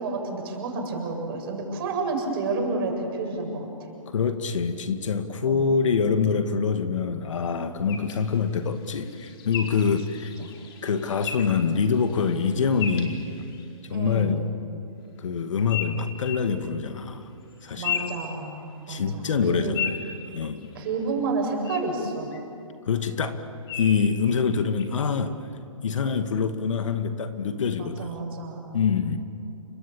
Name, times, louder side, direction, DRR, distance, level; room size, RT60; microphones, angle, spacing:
voice 1, 0.0-3.7 5.4-5.7 10.4-10.5 13.9-14.4 17.8-19.7 20.7-22.3 27.8-28.7, right 3 dB, 45° right, 2 dB, 7.6 m, -30 dB
voice 2, 4.1-10.3 10.8-13.3 13.9-14.4 15.2-17.3 17.6-18.1 18.9-19.9 20.3-20.7 22.9-23.4 23.8-25.3 25.8-28.1 28.7-29.2, left 6 dB, 65° left, 8 dB, 2.2 m, -25 dB
sound 1, 7.9-13.8 15.7-16.5 17.5-18.9 19.3-21.0 21.6-21.8 22.3-22.4 23.7-24.1 24.8-25.0, left 7 dB, 45° left, 4.7 m, -36 dB
29.5 x 25.5 x 7.3 m, 2.7 s
hypercardioid pair, 140°, 17 cm